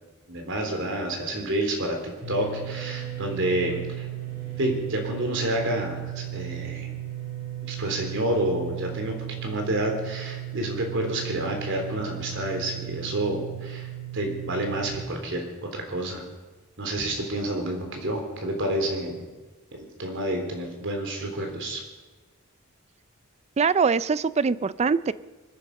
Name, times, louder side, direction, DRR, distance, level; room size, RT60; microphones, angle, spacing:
voice 1, 0.3-2.0 2.3-4.1 4.6-6.9 7.7-9.2 9.4-16.2 16.8-19.2 19.7-21.8, right 1 dB, 60° right, 3 dB, 3.7 m, -29 dB
sound 1, 2.2-15.0, right 12 dB, 85° right, 6.3 m, -36 dB
voice 2, 23.6-25.1, right 5 dB, 30° right, 17 dB, 0.4 m, -23 dB
25.5 x 10.0 x 5.4 m, 1.3 s
head